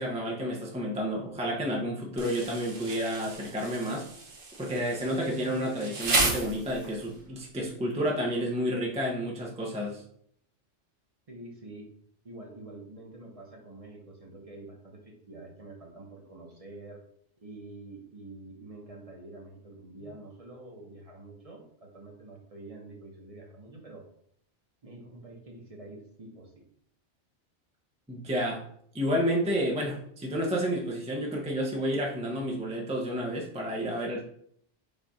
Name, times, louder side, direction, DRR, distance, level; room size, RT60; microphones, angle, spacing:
voice 1, 0.0-4.1 4.6-10.0 28.1-28.6 28.9-34.2, equal, 10° right, -1 dB, 0.4 m, -30 dB
Insect, 2.2-7.1, right 3 dB, 75° right, 1.2 m, -33 dB
voice 2, 11.3-11.9 12.2-17.0 17.4-24.1 24.8-26.6, right 2 dB, 35° right, 0 dB, 0.8 m, -47 dB
5.1 x 2.4 x 4.1 m, 0.67 s
omnidirectional pair, 1.2 m